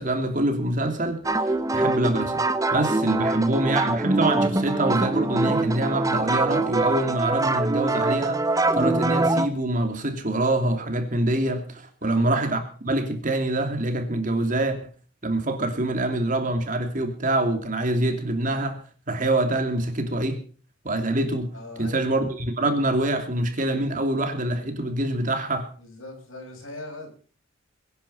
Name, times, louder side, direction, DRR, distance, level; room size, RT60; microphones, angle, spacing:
voice 1, 0.0-2.4 2.7-8.4 8.7-14.8 15.2-18.8 19.1-20.4 20.8-21.5 21.8-25.7, right 1 dB, 40° right, 6 dB, 2.9 m, -25 dB
sound 1, 1.2-9.5, right 2 dB, 15° right, 1.0 m, -24 dB
voice 2, 12.0-12.3 21.5-22.1 25.8-27.1, left 2 dB, 80° left, 3 dB, 7.0 m, -40 dB
23.0 x 10.0 x 5.7 m, 0.43 s
head